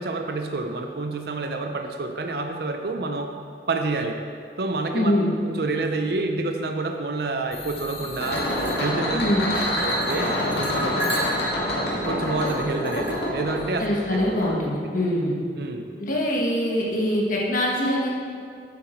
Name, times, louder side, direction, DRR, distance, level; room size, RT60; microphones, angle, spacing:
voice 1, 0.0-3.3 3.7-4.2 4.6-5.2 5.4-8.4 8.8-9.4 9.6-11.0 12.0-13.9 15.6-15.9, right 3 dB, 60° right, 4 dB, 0.6 m, -28 dB
voice 2, 4.9-5.3 9.1-9.5 13.8-15.4 16.0-18.1, left 1 dB, 50° left, -3 dB, 1.5 m, -23 dB
sound 1, 7.5-14.5, left 1 dB, 70° left, 2.1 m, -27 dB
sound 2, 8.1-11.6 12.2-13.1, equal, 10° right, 1.3 m, -34 dB
8.5 x 7.9 x 4.5 m, 2.3 s
head